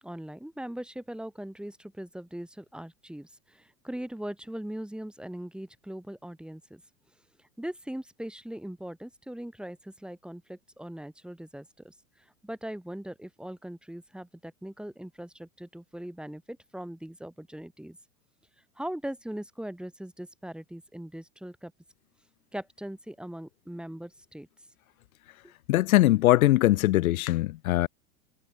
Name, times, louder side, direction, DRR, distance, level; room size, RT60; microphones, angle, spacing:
voice 1, 0.0-6.8 7.6-11.9 12.4-18.0 18.8-21.7 22.5-24.5 25.4-25.5, right 1 dB, ahead, 2.2 m, -40 dB
voice 2, 25.7-27.9, left 16 dB, 75° left, 0.8 m, -21 dB
hypercardioid pair, 105°, 43 cm